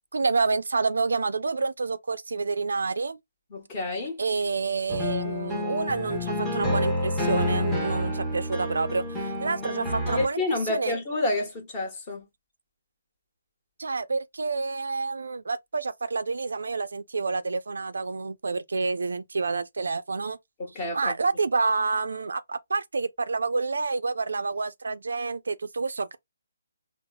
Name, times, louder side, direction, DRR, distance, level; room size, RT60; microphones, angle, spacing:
voice 1, 0.1-3.2 4.2-10.4 10.7-11.0 13.8-20.4 20.9-26.2, right 4 dB, 80° right, 0.4 m, -28 dB
voice 2, 3.5-4.2 10.2-12.3 20.6-21.1, left 2 dB, 25° left, 1.2 m, -29 dB
sound 1, 4.9-10.3, left 1 dB, 5° left, 0.8 m, -29 dB
4.6 x 2.0 x 2.2 m
hypercardioid pair, 160°, 0 cm